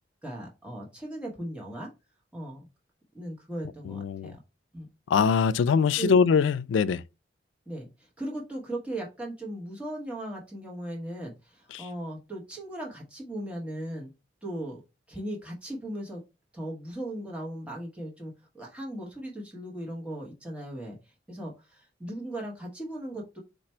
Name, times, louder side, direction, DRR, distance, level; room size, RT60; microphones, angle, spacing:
voice 1, 0.2-1.9 2.3-2.6 3.1-4.4 4.7-4.9 6.0-6.2 7.7-14.1 14.4-14.8 15.1-16.2 16.5-21.0 21.3-23.4, right 1 dB, 5° right, 1.0 m, -37 dB
voice 2, 3.9-4.3 5.1-7.0, left 6 dB, 85° left, 0.3 m, -23 dB
4.4 x 2.5 x 4.2 m
head